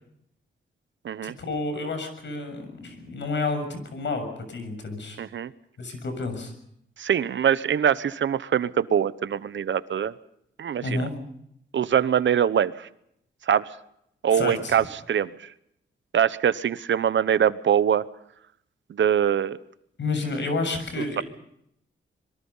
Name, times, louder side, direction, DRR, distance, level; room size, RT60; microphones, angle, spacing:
voice 1, 1.2-5.2 5.8-6.5 10.8-11.1 14.3-14.8 20.0-21.2, left 3 dB, 65° left, 8 dB, 6.9 m, -30 dB
voice 2, 5.2-5.5 7.0-10.1 10.6-11.1 11.7-12.9 13.5-13.7 14.2-15.5 16.1-18.0 19.0-19.6, right 8 dB, 70° right, 15 dB, 0.9 m, -23 dB
25.5 x 22.5 x 5.6 m, 0.74 s
cardioid pair, 85°, 20 cm